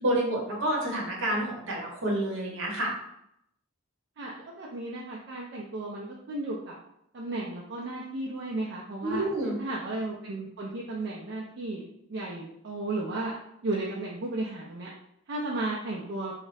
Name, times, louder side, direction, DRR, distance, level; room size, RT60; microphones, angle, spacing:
voice 1, 0.0-2.9 9.0-9.6, right 1 dB, 70° right, -2 dB, 0.9 m, -29 dB
voice 2, 4.2-6.7 7.1-9.2 9.6-11.8 12.1-13.3 13.6-14.9 15.3-16.3, right 2 dB, 55° right, -4 dB, 0.5 m, -34 dB
2.4 x 2.1 x 3.9 m, 0.76 s
head